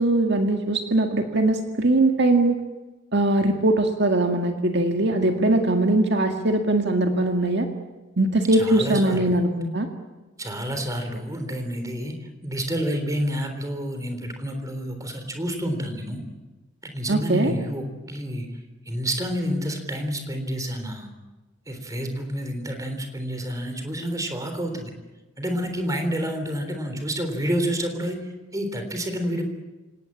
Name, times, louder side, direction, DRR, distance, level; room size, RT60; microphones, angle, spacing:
voice 1, 0.0-2.6 3.1-7.7 8.2-9.9 17.1-17.5, right 2 dB, 60° right, 4 dB, 1.9 m, -21 dB
voice 2, 8.5-9.4 10.4-16.2 16.8-18.5 18.9-21.1 21.7-24.9 25.4-28.2 28.5-29.4, equal, 15° right, 6 dB, 3.6 m, -29 dB
28.0 x 17.5 x 8.8 m, 1.2 s
head